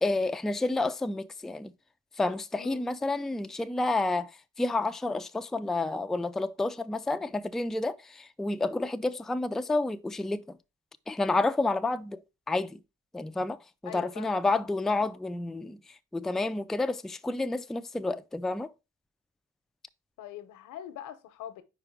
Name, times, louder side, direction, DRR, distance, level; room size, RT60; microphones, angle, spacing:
voice 1, 0.0-1.7 2.2-4.3 4.6-10.4 11.1-12.2 12.5-12.8 13.1-13.6 13.8-15.8 16.1-18.7, left 2 dB, ahead, 0.3 m, -29 dB
voice 2, 2.5-2.9 13.9-14.4 20.2-21.6, left 11 dB, 90° left, 0.9 m, -43 dB
5.0 x 4.5 x 4.5 m
cardioid pair, 90°, 30 cm